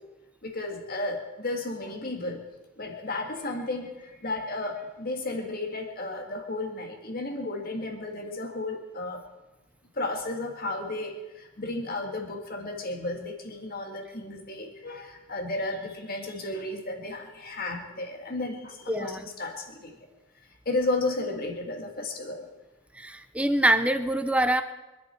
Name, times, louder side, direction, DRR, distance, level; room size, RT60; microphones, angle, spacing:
voice 1, 0.4-2.4 2.8-9.2 9.9-20.0 20.7-22.5, left 2 dB, 45° left, 2 dB, 2.1 m, -33 dB
voice 2, 18.9-19.2 23.0-24.6, right 1 dB, 5° right, 8 dB, 0.7 m, -24 dB
25.0 x 11.5 x 4.6 m, 1.1 s
head